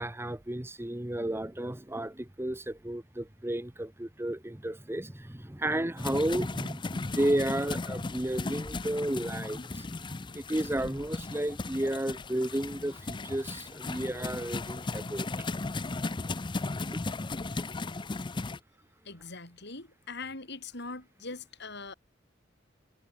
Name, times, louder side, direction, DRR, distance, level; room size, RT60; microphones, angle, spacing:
voice 1, 0.0-9.6 10.3-15.3, right 1 dB, 10° right, 1.1 m, -32 dB
sound 1, 6.0-18.6, left 3 dB, 25° left, 0.5 m, -36 dB
voice 2, 19.0-21.9, left 3 dB, 60° left, 7.3 m, -42 dB
head